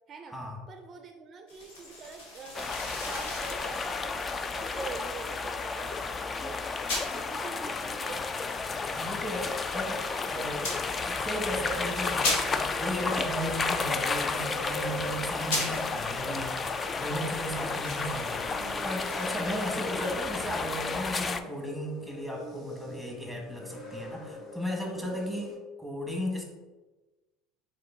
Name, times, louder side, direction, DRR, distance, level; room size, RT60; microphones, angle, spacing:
voice 1, 0.1-0.4 0.7-2.8 3.0-6.8 7.1-8.3 17.3-18.0 25.0-25.4, right 5 dB, 40° right, 5 dB, 0.4 m, -46 dB
sound 1, 1.5-19.4, left 2 dB, 90° left, 1.1 m, -40 dB
sound 2, 2.5-21.4, left 4 dB, 30° left, 0.3 m, -32 dB
voice 2, 8.9-10.7 11.0-26.4, equal, 5° left, 0 dB, 1.3 m, -35 dB
sound 3, 13.6-25.6, left 1 dB, 50° left, 1.1 m, -43 dB
3.8 x 3.7 x 3.7 m, 1.2 s
supercardioid pair, 95°, 0 cm